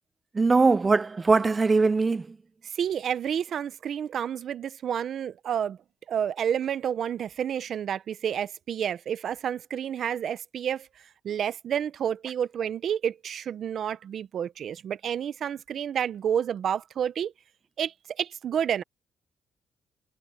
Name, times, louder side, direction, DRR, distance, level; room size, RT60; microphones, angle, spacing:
voice 1, 0.3-2.4, right 4 dB, 25° right, 0.5 m, -21 dB
voice 2, 2.6-5.8 6.1-17.3 17.8-18.8, right 8 dB, 60° right, 0.9 m, -30 dB
cardioid pair, 90°, 0 cm